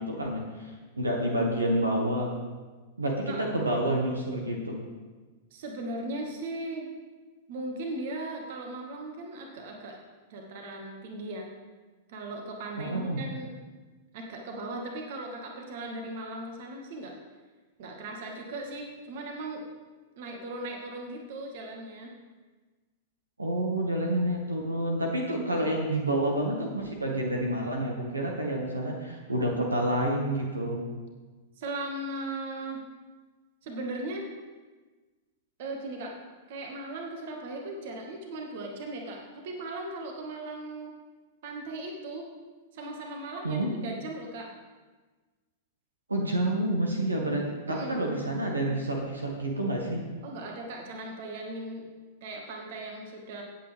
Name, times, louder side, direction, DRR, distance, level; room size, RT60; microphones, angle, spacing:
voice 1, 0.0-2.3 3.0-4.8 12.8-13.2 23.4-30.8 43.4-43.7 46.1-50.0, right 1 dB, 80° right, 0 dB, 1.8 m, -29 dB
voice 2, 5.5-6.9 7.5-10.0 10.3-11.5 12.1-13.5 14.1-17.1 17.8-19.6 20.2-22.1 25.6-25.8 31.6-32.8 33.6-34.3 35.6-36.2 36.5-40.9 41.4-42.3 42.7-44.5 47.7-48.1 50.2-51.9 52.2-53.4, right 2 dB, 55° right, 1 dB, 1.9 m, -38 dB
17.0 x 8.5 x 3.6 m, 1.3 s
figure-of-eight pair, 100°, 0 cm